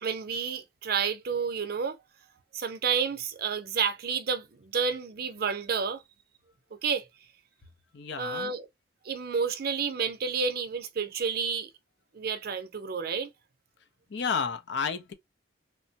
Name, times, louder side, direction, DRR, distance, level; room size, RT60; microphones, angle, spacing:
voice 1, 0.0-2.0 2.5-6.0 6.8-7.1 8.2-8.7 9.0-11.7 12.1-13.3, right 6 dB, 55° right, 0.5 m, -30 dB
voice 2, 7.9-8.5 14.1-15.1, left 5 dB, 70° left, 0.6 m, -31 dB
3.3 x 2.1 x 2.7 m
head